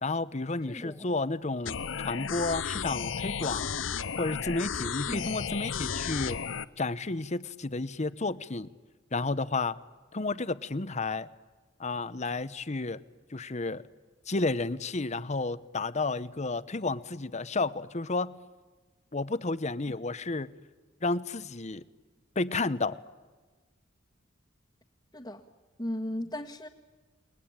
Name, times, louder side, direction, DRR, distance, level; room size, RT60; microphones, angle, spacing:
voice 1, 0.0-3.7 4.2-6.4 6.8-8.7 9.1-9.8 10.1-11.3 11.8-13.0 13.3-13.8 14.3-18.3 19.1-20.5 21.0-21.8 22.4-23.0, left 3 dB, 35° left, 15 dB, 0.9 m, -31 dB
voice 2, 0.7-1.0 5.1-5.3 25.1-25.4 25.8-26.7, left 1 dB, 20° left, -1 dB, 1.6 m, -36 dB
sound 1, 1.7-6.7, left 7 dB, 70° left, 0.7 m, -33 dB
29.5 x 21.0 x 8.9 m, 1.3 s
head